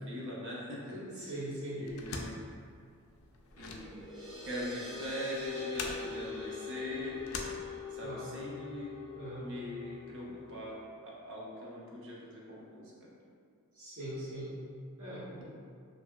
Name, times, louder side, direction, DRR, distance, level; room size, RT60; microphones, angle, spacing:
voice 1, 0.0-0.8 1.2-1.3 1.7-2.4 3.6-4.1 4.4-7.2 7.9-9.0 9.4-13.1, equal, 55° right, -5 dB, 0.6 m, -42 dB
voice 2, 0.9-1.8 8.0-8.4 9.1-9.5 13.7-14.5 15.0-15.4, right 1 dB, 85° right, -13 dB, 1.4 m, -41 dB
sound 1, 1.9-8.2, left 3 dB, 70° left, 0.3 m, -44 dB
sound 2, 3.6-10.7, left 6 dB, ahead, 0.5 m, -43 dB
2.8 x 2.6 x 2.2 m, 2.3 s
head